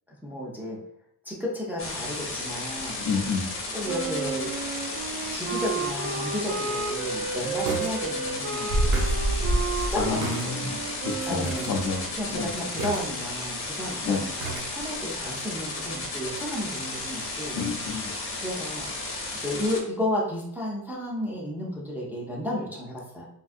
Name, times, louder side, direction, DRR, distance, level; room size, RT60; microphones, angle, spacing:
voice 1, 0.2-0.8 1.3-3.0 3.7-4.5 5.3-8.7 9.7-10.9 11.3-11.8 12.2-17.6 18.4-18.9 19.4-23.3, left 1 dB, 5° right, -4 dB, 0.4 m, -33 dB
sound 1, 1.8-19.8, left 2 dB, 35° left, 0.8 m, -34 dB
voice 2, 3.0-3.5 9.6-10.8 11.0-12.5 14.0-14.2 17.5-18.1, left 5 dB, 70° left, 3 dB, 0.6 m, -30 dB
Wind instrument woodwind instrument, 3.8-12.0, right 4 dB, 75° right, 0.5 m, -33 dB
sound 2, 6.4-6.5 7.7-8.0 8.2-8.3 8.7-10.5 10.9-11.0 11.5-11.7 12.0-12.2 12.8-13.4 14.4-14.7 15.1-15.2, right 1 dB, 60° right, 0.9 m, -27 dB
3.5 x 2.6 x 2.5 m, 0.70 s
cardioid pair, 175°, 37 cm